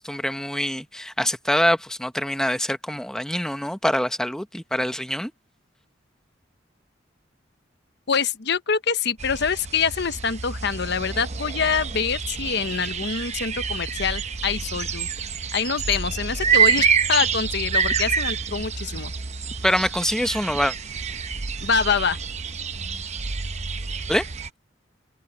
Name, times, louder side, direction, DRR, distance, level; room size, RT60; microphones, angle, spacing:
voice 1, 0.0-5.3 19.6-20.7 24.1-24.2, equal, 5° left, 0.9 m, -24 dB
voice 2, 8.1-15.1 15.5-19.1 21.6-22.2, left 6 dB, 65° left, 1.0 m, -25 dB
sound 1, 9.2-24.5, right 6 dB, 35° right, 0.8 m, -27 dB
head